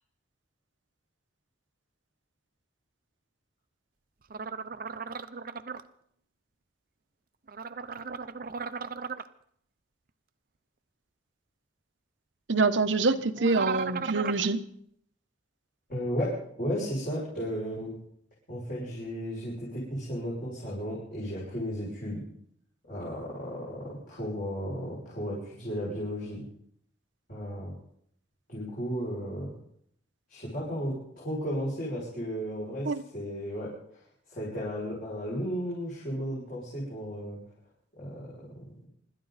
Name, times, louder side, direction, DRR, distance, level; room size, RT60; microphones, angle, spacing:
sound 1, 4.3-5.8 7.5-9.3 13.4-14.4, right 5 dB, 50° right, 0.7 m, -36 dB
voice 1, 12.5-14.6 32.8-33.0, right 3 dB, 85° right, 1.0 m, -25 dB
voice 2, 15.9-16.3 16.6-17.9 18.5-22.2 22.9-26.4 27.3-27.7 28.5-29.5 30.3-33.7 34.3-37.4 38.0-38.3, equal, 50° left, 6.6 m, -34 dB
26.0 x 13.0 x 4.2 m
head